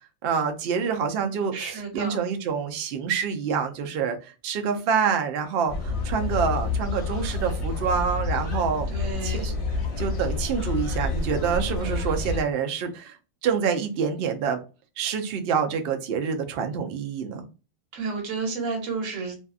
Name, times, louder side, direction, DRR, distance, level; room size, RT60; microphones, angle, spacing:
voice 1, 0.2-8.9 9.2-13.2 13.4-14.6 15.0-17.5, right 6 dB, 65° right, 0.6 m, -27 dB
voice 2, 1.5-2.2 8.9-9.5 17.9-19.4, right 4 dB, 85° right, 1.1 m, -31 dB
sound 1, 5.7-12.4, left 3 dB, 60° left, 1.1 m, -28 dB
2.6 x 2.4 x 2.3 m
omnidirectional pair, 1.4 m